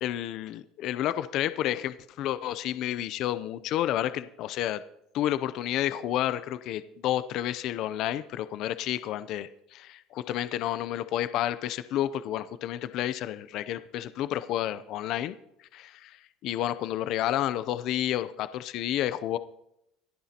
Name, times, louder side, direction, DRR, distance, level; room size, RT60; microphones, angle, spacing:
voice 1, 0.0-4.8 5.1-15.3 15.7-16.2 16.4-19.4, left 12 dB, 50° left, 13 dB, 0.5 m, -30 dB
25.5 x 9.2 x 2.9 m, 0.79 s
cardioid pair, 155°, 0 cm